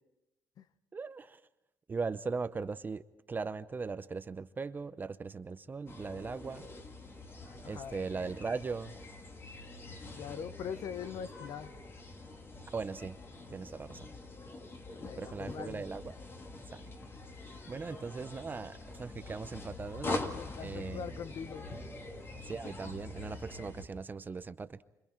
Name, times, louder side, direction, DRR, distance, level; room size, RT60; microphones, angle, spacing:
voice 1, 0.9-1.4 1.9-6.6 7.6-8.9 12.7-13.2 13.5-14.1 15.2-16.1 16.7-16.8 17.7-20.2 20.6-21.1 22.4-24.8, right 4 dB, 30° right, 13 dB, 0.7 m, -39 dB
sound 1, 5.9-23.9, left 2 dB, 35° left, 2.1 m, -44 dB
voice 2, 7.6-8.0 10.2-11.7 15.0-15.8 17.9-18.0 20.4-21.7, left 7 dB, 70° left, 14 dB, 0.8 m, -42 dB
29.5 x 25.5 x 4.4 m, 0.96 s
cardioid pair, 115°, 7 cm